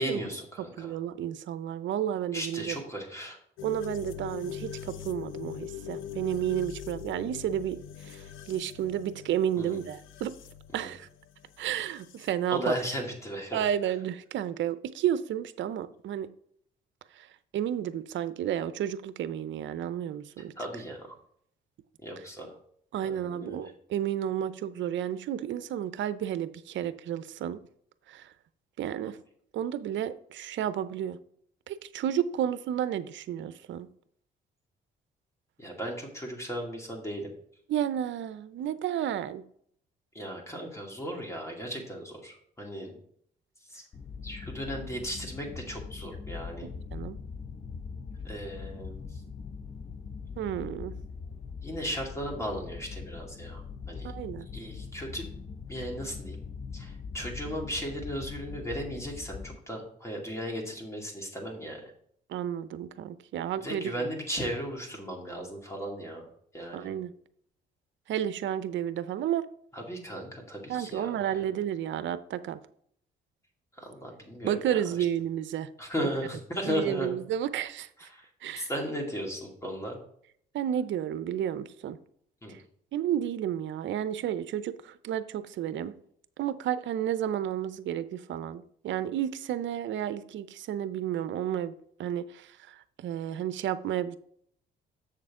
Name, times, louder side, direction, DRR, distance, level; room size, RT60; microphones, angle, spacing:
voice 1, 0.0-1.0 2.3-3.4 9.6-9.8 10.8-10.9 12.5-13.6 20.6-21.2 22.0-22.5 23.0-23.7 35.6-37.3 40.1-43.0 43.7-43.8 44.2-46.7 48.2-49.2 51.6-53.6 53.9-54.1 54.5-55.3 55.7-56.4 56.7-61.9 63.6-66.3 66.5-66.9 69.7-71.1 73.8-74.8 75.8-77.2 78.1-78.3 78.6-80.0 82.4-82.5, equal, 15° left, 2.4 m, -36 dB
voice 2, 0.8-2.8 3.6-10.3 10.7-11.1 11.6-12.7 13.5-16.3 17.1-17.3 17.5-20.5 22.9-27.6 28.1-28.3 28.8-29.2 29.5-31.2 31.7-33.9 37.7-39.4 46.6-47.2 50.4-50.9 54.0-54.5 62.3-64.1 66.7-67.1 68.1-69.4 70.7-72.6 74.4-75.7 76.0-76.1 76.6-77.9 78.4-78.7 80.5-82.0 82.5-82.6 82.9-85.9 86.4-91.7 92.0-94.2, right 10 dB, 70° right, 0.6 m, -32 dB
sound 1, 3.6-12.3, left 10 dB, 80° left, 0.7 m, -42 dB
sound 2, 43.9-59.6, left 5 dB, 35° left, 0.5 m, -41 dB
7.3 x 6.6 x 3.7 m
cardioid pair, 90°, 20 cm